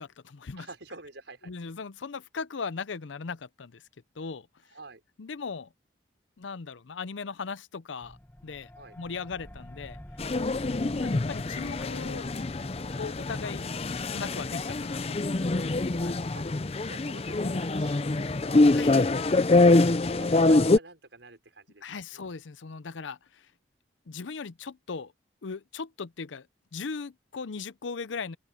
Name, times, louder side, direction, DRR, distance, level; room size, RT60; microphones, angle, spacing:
voice 1, 0.0-0.7 1.4-3.8 4.2-4.5 5.2-5.7 6.4-8.2 8.4-8.7 9.0-10.0 10.9-12.3 13.0-13.7 14.1-16.2 18.7-19.7 21.8-23.5 24.1-25.1 25.4-26.5 26.7-28.4, left 5 dB, 85° left, 0.6 m, -38 dB
voice 2, 0.6-1.5 4.7-5.0 8.7-9.0 16.3-16.5 16.9-18.8 19.4-21.8 22.1-22.2, right 3 dB, 75° right, 5.0 m, -48 dB
sound 1, 8.0-18.2, equal, 10° left, 1.2 m, -48 dB
sound 2, 10.2-20.8, left 2 dB, 30° left, 0.5 m, -25 dB
open air
head